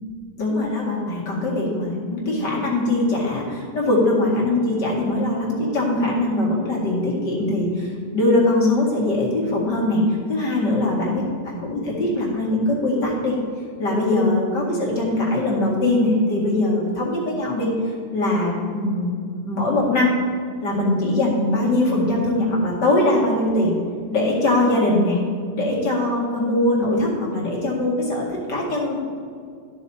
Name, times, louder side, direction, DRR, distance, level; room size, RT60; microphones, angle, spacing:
voice 1, 0.4-10.0 10.3-13.4 13.8-17.7 18.1-19.1 19.4-20.1 20.6-23.7 24.1-25.2 25.5-29.0, left 2 dB, 80° left, -4 dB, 2.7 m, -21 dB
12.0 x 6.3 x 4.2 m, 2.3 s
omnidirectional pair, 1.8 m